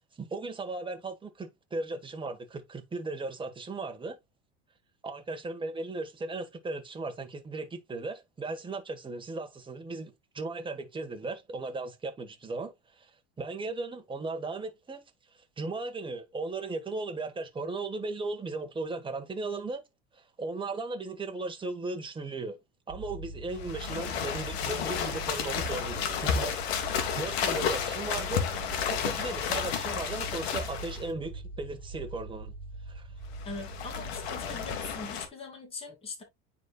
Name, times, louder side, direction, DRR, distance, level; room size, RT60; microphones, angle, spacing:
voice 1, 0.2-4.2 5.0-13.1 13.4-15.0 15.6-19.8 20.1-22.6 22.9-26.6 27.2-28.5 28.9-32.5 32.9-33.1, right 3 dB, 15° right, 1.5 m, -36 dB
sound 1, 22.9-35.0, right 2 dB, 85° right, 1.4 m, -42 dB
sound 2, 23.5-31.1 33.3-35.3, left 7 dB, 85° left, 1.7 m, -32 dB
voice 2, 33.5-36.2, left 3 dB, 20° left, 2.7 m, -41 dB
9.4 x 4.3 x 2.4 m
supercardioid pair, 115°, 30 cm